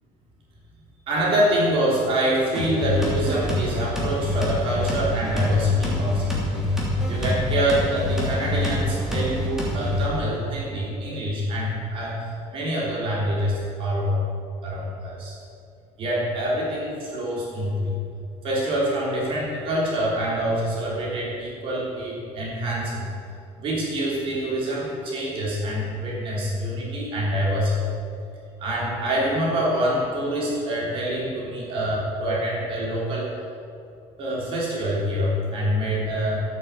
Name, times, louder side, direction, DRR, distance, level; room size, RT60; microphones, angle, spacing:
voice 1, 1.1-6.3 7.1-14.2 14.6-15.3 16.0-17.9 18.4-23.0 23.6-27.7 28.6-33.3 34.2-36.4, equal, 45° right, -4 dB, 3.4 m, -25 dB
sound 1, 2.6-10.1, left 1 dB, 5° right, 3.1 m, -26 dB
14.0 x 9.2 x 7.5 m, 2.5 s
cardioid pair, 180°, 13 cm